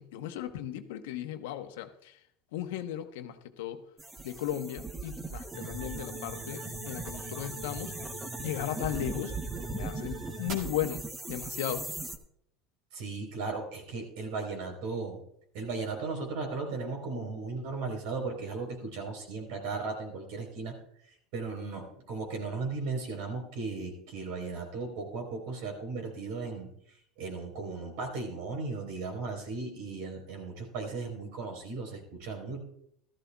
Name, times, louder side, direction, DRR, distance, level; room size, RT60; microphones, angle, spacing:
voice 1, 0.0-2.2 2.5-3.8 4.2-7.9 8.4-9.4 9.7-11.9, left 11 dB, 90° left, 0.9 m, -36 dB
sound 1, 4.0-12.2, right 3 dB, 10° right, 0.9 m, -40 dB
sound 2, 5.5-10.5, right 2 dB, 50° right, 2.1 m, -42 dB
voice 2, 12.9-15.2 15.5-20.7 21.3-26.7 27.2-32.6, right 4 dB, 75° right, 4.0 m, -36 dB
15.0 x 13.5 x 2.3 m
supercardioid pair, 130°, 0 cm